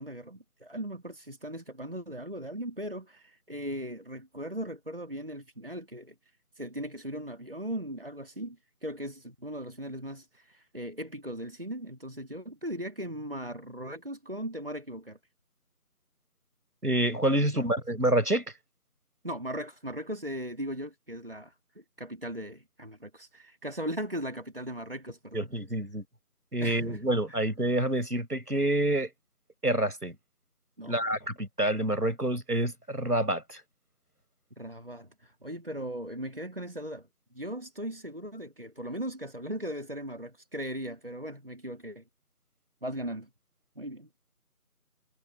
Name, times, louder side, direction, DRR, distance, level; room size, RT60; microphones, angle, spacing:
voice 1, 0.0-6.1 6.6-15.2 17.5-17.7 19.2-25.5 26.6-27.0 27.3-27.4 30.8-31.1 34.6-37.1 37.3-42.0 42.8-43.3 43.8-44.1, equal, 35° right, 2.1 m, -38 dB
voice 2, 16.8-18.4 25.3-26.0 26.5-29.1 29.6-30.2 30.9-33.6, right 1 dB, 80° right, 7.0 m, -27 dB
figure-of-eight pair, 175°, 45 cm